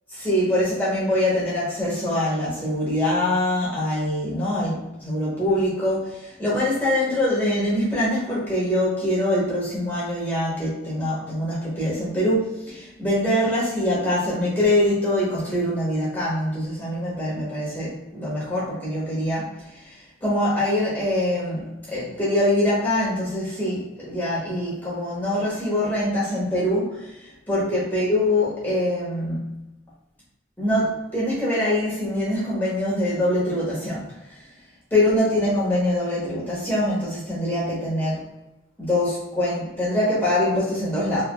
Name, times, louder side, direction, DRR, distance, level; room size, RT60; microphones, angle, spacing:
voice 1, 0.1-29.5 30.6-34.1 34.9-38.3 38.8-41.2, left 1 dB, 10° left, -8 dB, 1.5 m, -24 dB
3.9 x 3.3 x 2.2 m, 0.94 s
head